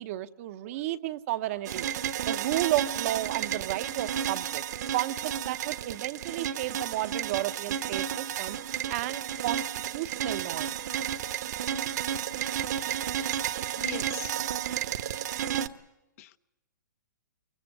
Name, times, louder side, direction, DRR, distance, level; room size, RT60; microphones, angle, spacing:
voice 1, 0.0-1.9 2.2-4.6 4.9-8.6 8.9-9.6 9.9-10.7, right 15 dB, 45° right, 11 dB, 0.8 m, -32 dB
sound 1, 1.7-15.7, right 10 dB, 60° right, 1.2 m, -32 dB
voice 2, 13.7-14.4 15.3-15.6 16.2-16.4, left 15 dB, 50° left, 12 dB, 0.9 m, -42 dB
24.0 x 23.5 x 6.6 m, 1.0 s
hypercardioid pair, 140°, 10 cm